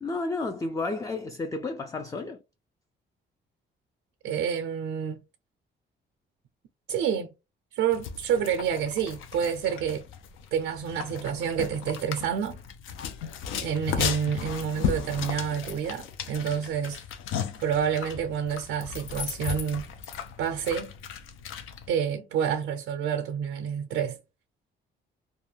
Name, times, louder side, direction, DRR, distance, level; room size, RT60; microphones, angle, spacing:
voice 1, 0.0-2.4, left 3 dB, 15° left, 0.3 m, -31 dB
voice 2, 4.2-5.2 6.9-7.3 7.7-10.1 10.5-12.6 13.6-17.0 17.6-19.9 20.4-21.0 21.9-24.2, right 8 dB, 85° right, 0.5 m, -28 dB
sound 1, 7.9-21.9, left 7 dB, 85° left, 0.5 m, -35 dB
2.4 x 2.2 x 3.1 m
cardioid pair, 90°, 20 cm